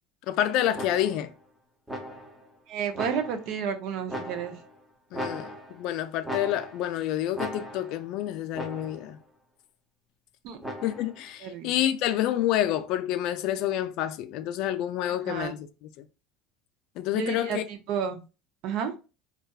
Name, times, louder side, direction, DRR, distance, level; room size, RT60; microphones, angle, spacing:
voice 1, 0.3-1.3 5.1-9.2 10.8-16.1 17.0-17.7, left 12 dB, 60° left, 0.3 m, -28 dB
sound 1, 0.7-1.3 1.9-2.5 2.9-3.6 4.1-4.7 5.1-5.9 6.2-7.0 7.3-8.1 8.5-9.1 10.6-11.2, equal, 5° right, 0.6 m, -38 dB
voice 2, 2.7-4.5 10.4-10.6 11.4-11.7 15.1-15.5 17.1-18.2 18.6-18.9, right 7 dB, 60° right, 0.5 m, -31 dB
2.6 x 2.2 x 2.2 m
supercardioid pair, 120°, 0 cm